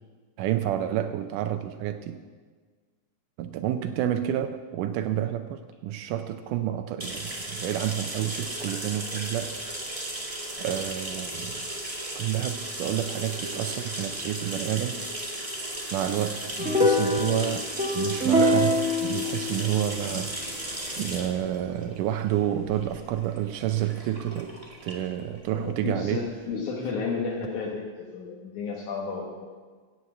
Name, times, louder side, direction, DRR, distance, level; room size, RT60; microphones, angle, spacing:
voice 1, 0.4-2.2 3.4-9.6 9.9-10.1 10.6-11.6 12.2-15.0 15.9-20.4 21.0-24.5 24.8-26.3, right 11 dB, 85° right, 8 dB, 2.1 m, -29 dB
sound 1, 7.0-26.4, right 1 dB, 45° right, 0.4 m, -36 dB
sound 2, 16.6-20.0, left 1 dB, 5° right, 1.7 m, -24 dB
voice 2, 25.5-29.5, left 5 dB, 70° left, -1 dB, 2.6 m, -32 dB
16.0 x 6.2 x 8.3 m, 1.5 s
omnidirectional pair, 3.6 m